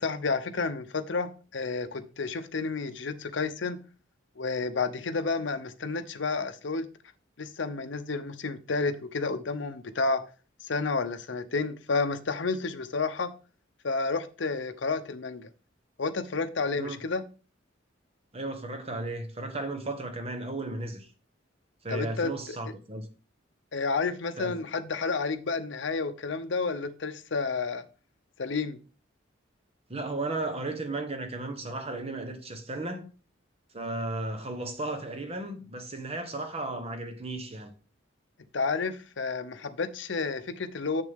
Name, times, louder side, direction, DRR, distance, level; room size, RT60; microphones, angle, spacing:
voice 1, 0.0-3.8 4.4-6.9 7.4-10.2 10.6-13.3 13.8-15.5 16.0-17.2 21.9-22.6 23.7-27.8 28.4-28.8 38.5-41.0, left 4 dB, 70° left, 0.7 m, -30 dB
voice 2, 18.3-21.1 21.8-23.1 24.4-24.6 29.9-33.1 33.7-37.7, right 2 dB, 30° right, 1.0 m, -35 dB
7.4 x 6.6 x 3.6 m
head